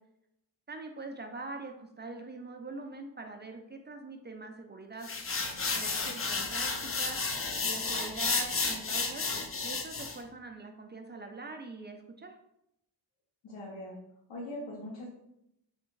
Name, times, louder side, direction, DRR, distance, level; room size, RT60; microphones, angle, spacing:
voice 1, 0.7-5.1 5.7-9.2 9.6-12.3, right 3 dB, 25° right, 4 dB, 0.4 m, -43 dB
sound 1, 5.0-10.2, left 4 dB, 30° left, 0.5 m, -32 dB
voice 2, 5.7-6.2 13.4-14.0 14.3-15.1, left 1 dB, 80° left, -5 dB, 1.0 m, -42 dB
3.5 x 3.3 x 3.1 m, 0.82 s
cardioid pair, 90°, 44 cm